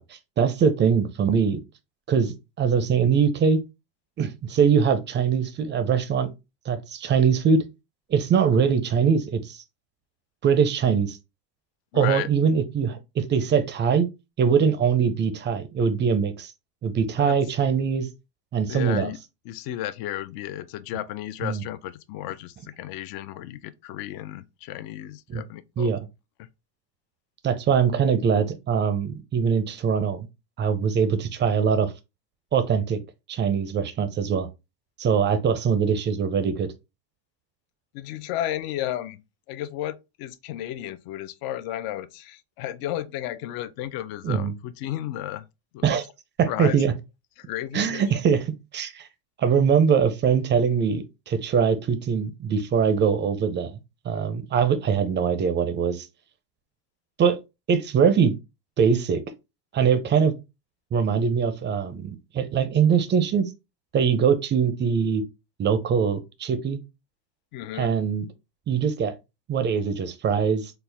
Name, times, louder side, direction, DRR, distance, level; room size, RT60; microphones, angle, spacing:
voice 1, 0.0-1.6 2.1-3.6 4.2-6.3 6.7-7.6 8.1-9.6 10.4-11.2 11.9-14.1 14.4-16.5 16.8-18.1 18.5-19.1 21.4-21.6 25.3-25.4 25.8-26.0 27.4-30.3 30.6-31.9 32.5-33.0 33.3-34.5 35.0-36.7 44.2-44.5 45.8-46.0 46.4-46.9 47.7-48.4 48.7-49.1 49.4-53.8 54.0-56.1 57.2-57.4 57.7-58.3 58.8-59.2 59.7-60.3 60.9-63.5 63.9-65.2 65.6-66.8 67.7-68.3 68.7-69.1 69.5-70.7, right 6 dB, 25° right, 0.5 m, -22 dB
voice 2, 11.9-12.3 17.2-17.4 18.7-19.2 19.5-25.9 26.4-26.5 37.9-39.2 39.5-45.4 45.7-46.0 46.5-46.9 47.4-48.1 67.5-67.9, left 13 dB, 55° left, 0.5 m, -33 dB
4.4 x 2.0 x 3.3 m
supercardioid pair, 120°, 46 cm